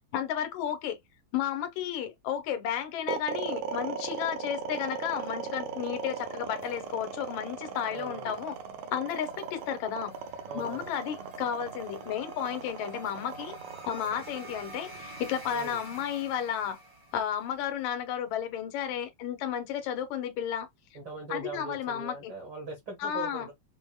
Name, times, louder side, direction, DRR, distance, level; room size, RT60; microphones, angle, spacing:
voice 1, 0.1-1.0 1.3-8.6 8.9-10.1 10.5-13.5 13.9-16.8 17.1-20.7 21.3-22.3 23.0-23.5, left 9 dB, 80° left, 2.1 m, -33 dB
sound 1, 3.1-17.7, right 2 dB, 35° right, 0.9 m, -49 dB
sound 2, 3.1-15.3, right 6 dB, 85° right, 2.1 m, -38 dB
voice 2, 7.9-8.4 10.5-10.9 15.5-15.8 20.9-23.5, right 2 dB, 60° right, 1.1 m, -40 dB
6.1 x 2.0 x 2.3 m
omnidirectional pair, 3.3 m